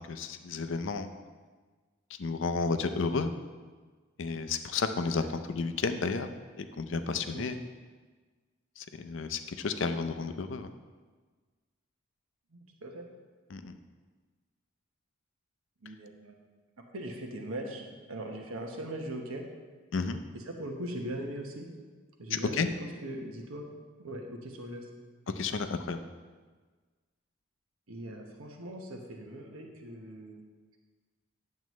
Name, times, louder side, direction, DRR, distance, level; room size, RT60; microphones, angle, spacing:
voice 1, 0.1-1.1 2.2-3.3 4.2-6.3 6.6-7.6 8.8-10.7 13.5-13.7 19.9-20.2 22.3-22.7 25.4-26.0, left 4 dB, 65° left, 9 dB, 0.5 m, -32 dB
voice 2, 12.5-13.1 15.8-16.4 16.9-17.8 18.1-19.4 20.3-21.7 22.2-23.7 24.0-24.9 27.9-30.4, right 1 dB, 85° right, 2 dB, 1.1 m, -40 dB
9.3 x 7.5 x 3.1 m, 1.4 s
head